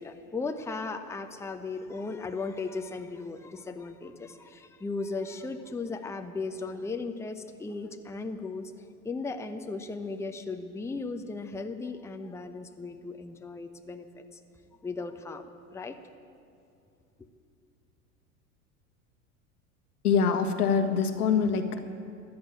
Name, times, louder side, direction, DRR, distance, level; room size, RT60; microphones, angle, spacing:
voice 1, 0.0-14.4 14.8-16.0, left 3 dB, 5° left, 6 dB, 0.8 m, -36 dB
voice 2, 20.0-21.8, left 6 dB, 80° left, 7 dB, 1.4 m, -24 dB
14.0 x 10.5 x 8.7 m, 2.5 s
hypercardioid pair, 85°, 44 cm